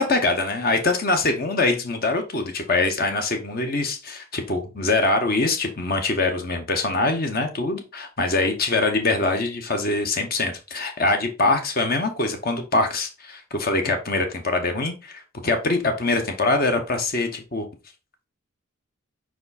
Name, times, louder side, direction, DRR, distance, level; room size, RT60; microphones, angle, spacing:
voice 1, 0.0-17.7, left 2 dB, 45° left, 5 dB, 0.9 m, -23 dB
4.8 x 4.8 x 4.0 m, 0.29 s
head